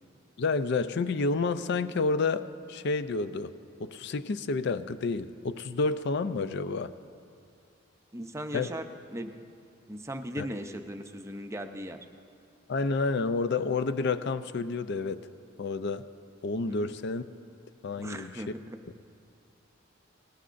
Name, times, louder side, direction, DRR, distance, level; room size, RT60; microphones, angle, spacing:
voice 1, 0.4-3.5 3.8-6.9 8.5-8.7 10.4-10.5 12.7-15.2 15.6-16.1 16.4-17.3 17.8-18.4, left 3 dB, 55° left, 12 dB, 0.4 m, -29 dB
voice 2, 8.1-9.3 9.9-12.0 16.7-16.9 18.0-18.8, equal, 15° right, 5 dB, 0.5 m, -38 dB
19.5 x 15.0 x 2.5 m, 2.4 s
head